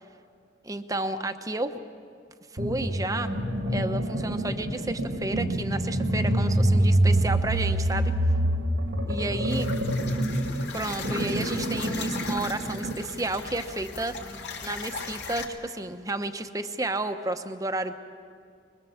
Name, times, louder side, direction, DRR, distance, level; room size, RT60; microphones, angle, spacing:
voice 1, 0.6-1.7 2.5-3.3 3.7-8.1 9.1-9.7 10.7-14.1 14.6-17.9, right 2 dB, 20° right, 8 dB, 0.9 m, -31 dB
sound 1, 2.6-13.0, right 1 dB, 90° right, 2.4 m, -26 dB
sound 2, 9.5-15.5, left 4 dB, 70° left, 2.5 m, -38 dB
24.5 x 22.0 x 7.2 m, 2.2 s
head